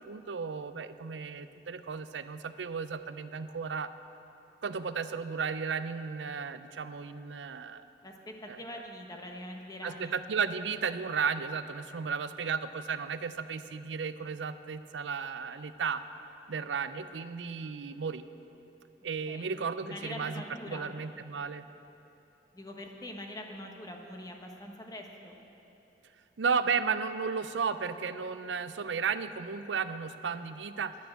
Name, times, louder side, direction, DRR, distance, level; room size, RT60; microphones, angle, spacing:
voice 1, 0.0-3.9 4.6-7.8 8.5-8.6 9.8-16.0 16.5-18.2 19.0-21.6 26.4-31.0, right 5 dB, 90° right, 12 dB, 0.5 m, -34 dB
voice 2, 8.0-10.2 19.3-19.5 19.8-20.9 22.5-25.3, left 1 dB, 20° left, 2 dB, 1.2 m, -43 dB
11.0 x 9.4 x 7.7 m, 3.0 s
head